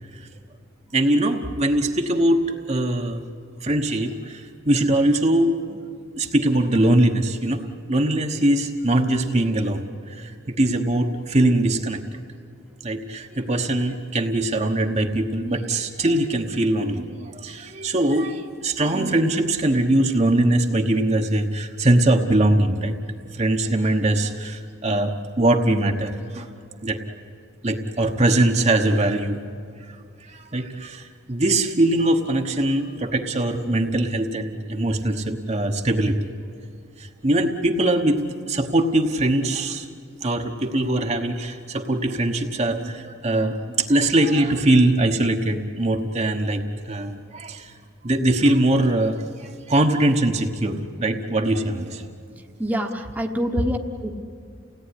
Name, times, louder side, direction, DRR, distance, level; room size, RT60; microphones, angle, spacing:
voice 1, 0.9-3.2 3.6-5.8 6.2-12.0 12.8-23.0 23.3-26.5 26.8-27.0 27.6-29.4 30.3-36.2 37.0-39.9 40.2-47.7 48.0-52.0, right 1 dB, 35° right, 3 dB, 1.2 m, -22 dB
voice 2, 52.6-54.1, equal, 10° right, 1 dB, 1.2 m, -26 dB
29.5 x 17.5 x 9.9 m, 2.3 s
head